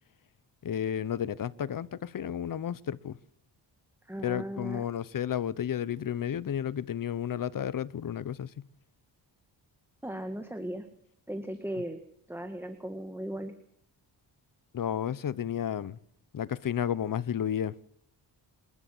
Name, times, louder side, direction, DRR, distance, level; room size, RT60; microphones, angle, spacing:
voice 1, 0.6-3.2 4.2-8.5 14.7-16.0 16.3-17.7, left 9 dB, 50° left, 0.9 m, -32 dB
voice 2, 4.0-4.8 10.0-10.9 11.3-12.0 12.3-13.6, right 1 dB, 5° right, 1.8 m, -37 dB
27.5 x 12.5 x 7.8 m
wide cardioid pair, 120°, 43 cm